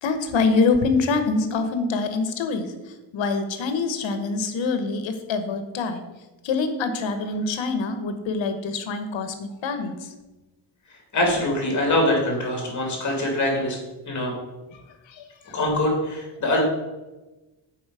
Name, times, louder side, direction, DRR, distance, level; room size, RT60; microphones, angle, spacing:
voice 1, 0.0-6.0 6.4-10.1 14.7-15.5, left 4 dB, 75° left, 8 dB, 1.1 m, -25 dB
voice 2, 11.1-13.8 14.1-14.3 15.5-16.6, left 1 dB, 40° left, 0 dB, 2.5 m, -23 dB
7.2 x 5.0 x 4.8 m, 1.1 s
cardioid pair, 140°, 46 cm